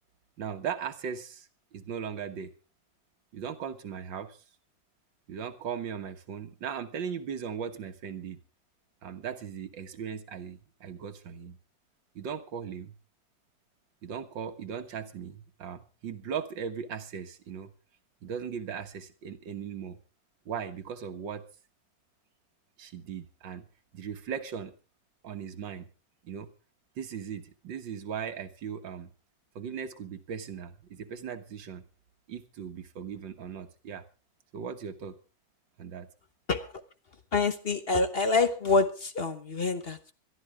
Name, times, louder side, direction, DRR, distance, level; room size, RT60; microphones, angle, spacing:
voice 1, 0.4-2.5 3.3-4.4 5.3-8.4 9.0-11.6 12.2-12.9 14.0-17.7 18.2-20.0 20.5-21.4 22.8-23.7 23.9-24.7 25.2-25.9 26.2-26.5 27.0-29.1 29.6-31.8 32.3-34.0 34.5-35.2 35.8-36.1, right 7 dB, 85° right, 8 dB, 2.1 m, -38 dB
voice 2, 37.3-40.1, left 3 dB, 40° left, 9 dB, 1.1 m, -26 dB
21.5 x 13.0 x 3.5 m, 0.34 s
omnidirectional pair, 2.0 m